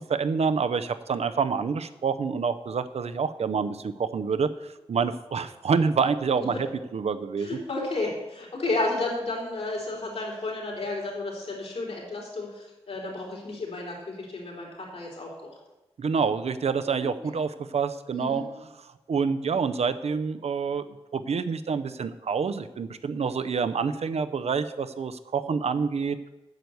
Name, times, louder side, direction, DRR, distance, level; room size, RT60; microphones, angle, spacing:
voice 1, 0.1-4.5 4.9-6.7 6.9-7.5 16.0-18.4 19.1-20.8 21.1-26.3, right 5 dB, 80° right, 11 dB, 0.6 m, -27 dB
voice 2, 7.4-15.6 17.0-17.1 18.1-18.4, left 2 dB, 75° left, -1 dB, 3.8 m, -32 dB
9.1 x 6.9 x 7.9 m, 1.0 s
wide cardioid pair, 100°, 11 cm